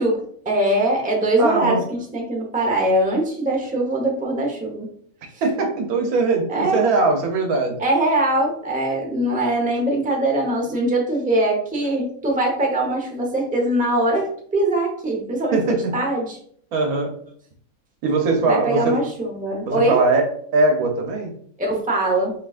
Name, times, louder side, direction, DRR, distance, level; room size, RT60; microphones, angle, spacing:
voice 1, 0.0-4.9 6.5-6.8 7.8-14.3 14.5-16.4 18.5-20.0 21.6-22.3, right 1 dB, 5° right, -1 dB, 0.8 m, -22 dB
voice 2, 1.4-1.8 5.4-7.8 15.5-16.0 16.7-17.1 18.0-18.9 19.6-20.2 20.5-21.3, right 3 dB, 80° right, 3 dB, 1.4 m, -20 dB
5.8 x 3.1 x 2.4 m, 0.62 s
omnidirectional pair, 1.5 m